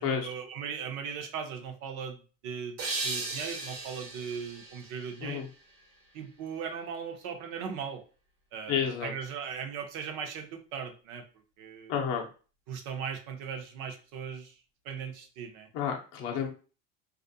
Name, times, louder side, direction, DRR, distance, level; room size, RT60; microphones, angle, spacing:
voice 1, 0.0-2.8 3.0-5.4 6.1-8.0 8.5-11.2 11.6-11.9 12.7-14.5 14.8-15.7, right 7 dB, 55° right, 4 dB, 0.7 m, -38 dB
sound 1, 2.8-5.9, right 3 dB, 85° right, 1.2 m, -37 dB
voice 2, 8.7-9.1 11.9-12.3 15.7-16.5, left 7 dB, 40° left, 1 dB, 0.6 m, -30 dB
2.5 x 2.0 x 2.6 m, 0.36 s
supercardioid pair, 135°, 37 cm